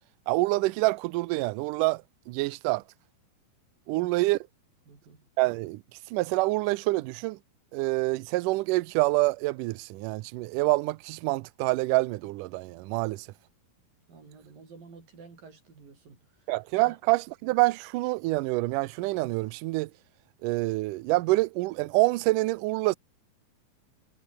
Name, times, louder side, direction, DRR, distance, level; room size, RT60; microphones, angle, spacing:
voice 1, 0.3-2.8 3.9-4.4 5.4-5.8 6.1-7.4 7.7-13.3 16.5-19.9 20.4-23.0, right 21 dB, 85° right, 1.8 m, -26 dB
voice 2, 4.9-5.3 14.1-16.5 16.8-17.0, right 4 dB, 60° right, 7.9 m, -51 dB
omnidirectional pair, 4.4 m